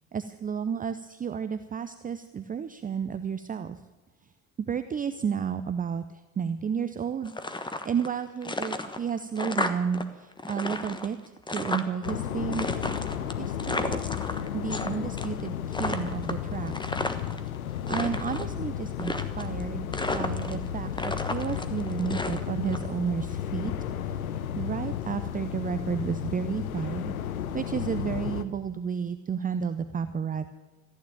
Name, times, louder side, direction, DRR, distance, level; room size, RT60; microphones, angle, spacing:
voice 1, 0.1-3.8 4.7-7.3 7.8-12.7 13.4-14.0 14.5-16.7 17.9-23.7 24.1-24.2 24.6-27.1 27.5-30.5, right 7 dB, 20° right, 11 dB, 0.6 m, -32 dB
sound 1, 7.2-8.1 8.4-10.0 10.3-12.1 12.5-14.9 15.2-15.5 15.7-17.4 17.8-18.5 19.0-19.6 19.9-20.7 20.9-22.8, left 2 dB, 10° left, 1.3 m, -32 dB
sound 2, 12.0-28.4, left 9 dB, 80° left, 0.9 m, -33 dB
14.5 x 9.5 x 8.8 m, 1.2 s
figure-of-eight pair, 60°, 42 cm